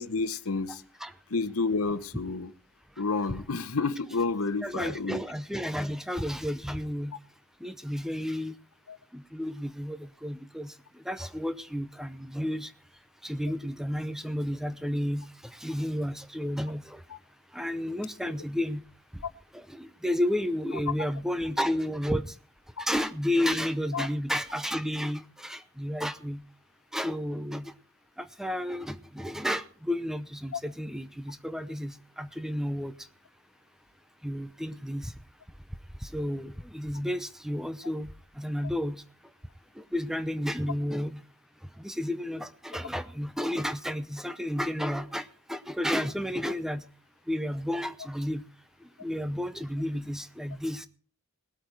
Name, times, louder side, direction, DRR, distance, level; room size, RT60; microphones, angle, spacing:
voice 1, 0.0-0.8 1.3-2.5 3.0-5.2 8.9-9.0 22.8-22.9 23.9-24.1 30.5-30.6, left 4 dB, 80° left, 0.9 m, -30 dB
voice 2, 0.7-1.1 4.6-7.1 7.6-8.5 9.1-12.7 13.2-17.0 17.5-18.8 19.1-19.2 19.5-22.3 22.8-26.4 26.9-27.7 28.2-32.9 34.2-35.1 36.0-38.1 38.4-39.0 39.8-41.2 41.8-46.8 47.3-48.4 49.0-50.9, equal, ahead, 0.7 m, -32 dB
19.5 x 8.4 x 4.7 m
head